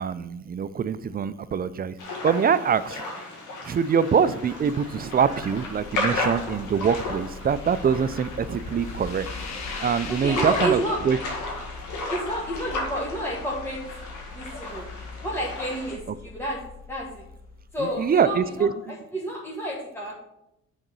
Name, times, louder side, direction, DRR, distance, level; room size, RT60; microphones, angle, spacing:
voice 1, 0.0-2.0 2.2-3.0 3.6-9.3 9.8-10.8 11.0-11.2 17.8-18.7, right 7 dB, 30° right, 14 dB, 0.4 m, -24 dB
sound 1, 2.0-15.9, left 2 dB, 85° left, 1.8 m, -34 dB
sound 2, 4.4-18.3, left 4 dB, 65° left, 1.3 m, -41 dB
voice 2, 10.1-11.0 12.1-13.8 14.3-14.9 15.2-16.6 16.9-17.2 17.7-20.2, right 1 dB, 10° left, -5 dB, 1.4 m, -30 dB
6.4 x 3.9 x 6.2 m, 0.87 s
cardioid pair, 90°, 30 cm